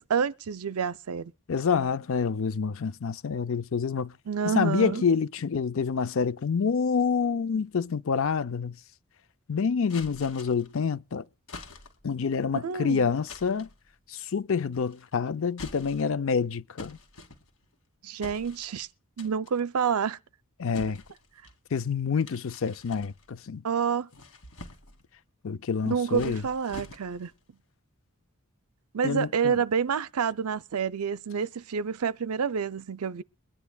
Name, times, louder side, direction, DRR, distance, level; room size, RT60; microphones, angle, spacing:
voice 1, 0.0-1.3 4.3-5.0 12.6-13.1 18.0-18.9 19.2-20.2 23.6-24.1 25.9-27.3 28.9-33.2, right 6 dB, 80° right, 0.5 m, -28 dB
voice 2, 1.5-4.1 4.4-8.8 9.5-11.3 12.0-13.7 14.1-17.0 20.6-21.0 21.7-23.6 25.4-26.4 29.0-29.6, left 5 dB, 60° left, 0.5 m, -27 dB
sound 1, 9.9-10.8 11.5-12.1 13.3-13.8 14.7-15.1 15.5-16.2 16.8-17.7 18.2-18.9 19.2-19.6 20.7-21.6 22.2-23.5 23.9-25.0 25.8-27.3, left 2 dB, 80° left, 2.4 m, -46 dB
22.5 x 10.5 x 2.3 m
head